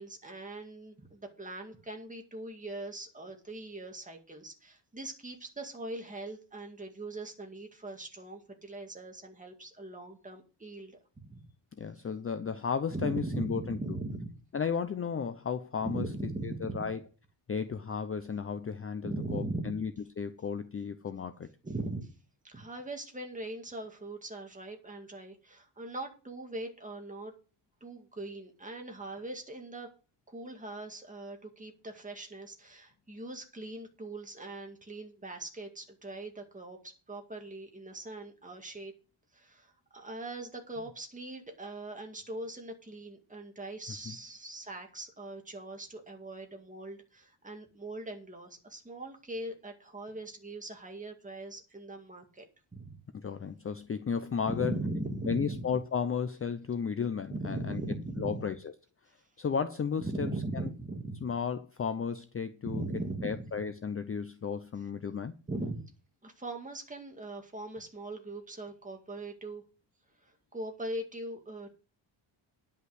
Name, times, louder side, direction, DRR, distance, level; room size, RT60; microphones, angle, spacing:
voice 1, 0.0-10.9 11.3-11.4 12.9-14.4 15.8-16.9 19.0-19.8 21.6-22.1 22.4-27.3 27.8-29.9 30.3-38.9 39.3-52.5 52.7-53.0 54.5-55.6 57.3-58.4 60.0-61.3 62.6-63.6 65.5-65.8 66.2-69.6 70.2-71.7, right 2 dB, 15° right, 2.1 m, -40 dB
voice 2, 11.8-14.0 14.5-16.1 16.4-17.0 17.5-21.5 44.0-44.2 53.1-54.8 55.2-57.8 58.2-58.7 59.4-60.3 61.2-62.9 63.2-65.3, left 6 dB, 30° left, 0.6 m, -34 dB
10.5 x 5.6 x 7.8 m
wide cardioid pair, 165°, 49 cm